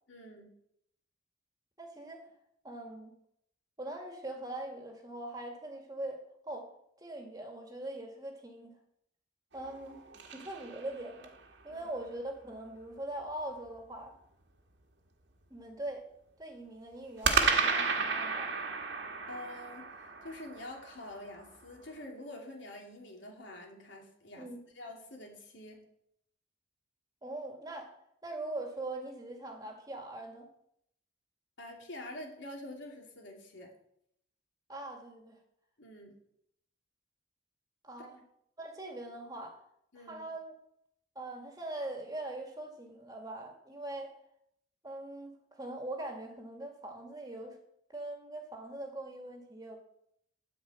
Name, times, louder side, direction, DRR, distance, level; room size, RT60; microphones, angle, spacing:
voice 1, 0.1-0.5 11.7-11.8 19.3-24.5 24.8-25.8 31.6-33.7 35.8-36.1 38.0-38.1 39.9-40.3, left 1 dB, 75° left, 1 dB, 2.7 m, -46 dB
voice 2, 1.8-2.2 2.6-3.2 3.8-6.7 7.0-8.7 9.5-10.0 10.3-11.3 11.6-14.1 15.5-16.1 16.4-18.5 24.4-24.6 27.2-27.9 28.2-30.5 34.7-35.4 37.8-38.2 38.6-39.6 40.0-40.5 41.2-44.1 44.8-47.6 47.9-49.8, right 1 dB, 20° right, 3 dB, 2.0 m, -42 dB
sound 1, 9.5-11.4 17.2-21.5, right 4 dB, 70° right, 1.7 m, -33 dB
13.0 x 5.1 x 8.2 m, 0.74 s
head